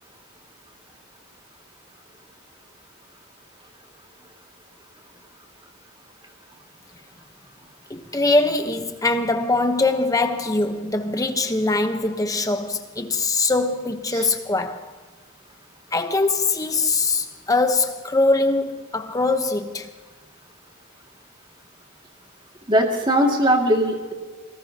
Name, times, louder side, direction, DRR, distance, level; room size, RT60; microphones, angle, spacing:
voice 1, 7.9-14.9 15.9-19.9, left 3 dB, 15° left, 1.0 m, -22 dB
voice 2, 22.7-24.1, equal, 20° right, 2.3 m, -19 dB
26.5 x 18.5 x 2.9 m
head